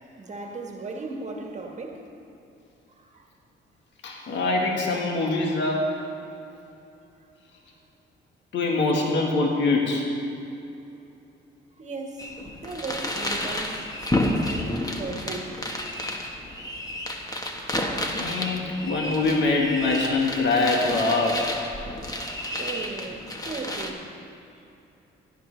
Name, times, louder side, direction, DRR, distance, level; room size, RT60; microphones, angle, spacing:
voice 1, 0.2-2.0 3.0-3.2 4.1-4.2 11.8-12.3 12.6-13.8 14.1-15.5 15.8-15.9 21.7-21.9 22.4-24.3, right 3 dB, 35° right, 1 dB, 1.5 m, -37 dB
voice 2, 4.0-5.9 8.5-10.1 18.1-21.4, left 3 dB, 65° left, 0 dB, 1.6 m, -24 dB
sound 1, 12.2-23.9, left 1 dB, 20° left, 1.3 m, -31 dB
17.0 x 11.0 x 3.3 m, 2.9 s
cardioid pair, 90°, 20 cm